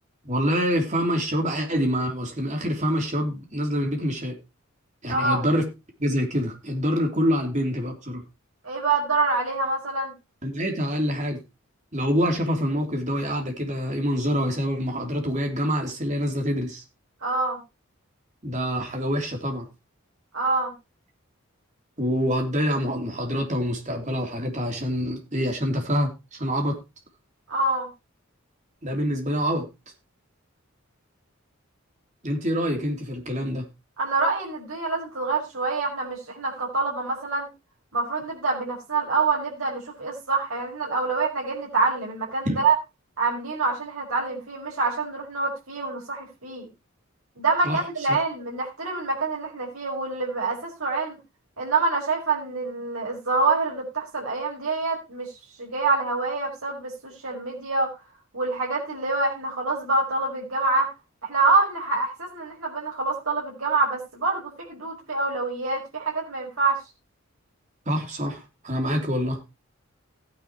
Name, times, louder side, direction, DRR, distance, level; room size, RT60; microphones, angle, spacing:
voice 1, 0.2-4.4 5.0-5.6 6.0-8.2 10.4-11.4 11.9-16.8 18.4-19.7 22.0-26.8 28.8-29.7 32.2-33.7 42.4-42.6 47.6-47.8 67.9-69.4, equal, 35° right, 3 dB, 3.1 m, -26 dB
voice 2, 5.1-5.4 8.6-10.1 17.2-17.6 20.3-20.7 27.5-27.9 34.0-37.5 37.9-42.8 43.2-46.7 47.4-51.2 51.6-57.9 58.3-60.9 61.2-66.8, right 3 dB, 85° right, -3 dB, 5.2 m, -26 dB
16.0 x 9.6 x 3.0 m, 0.25 s
head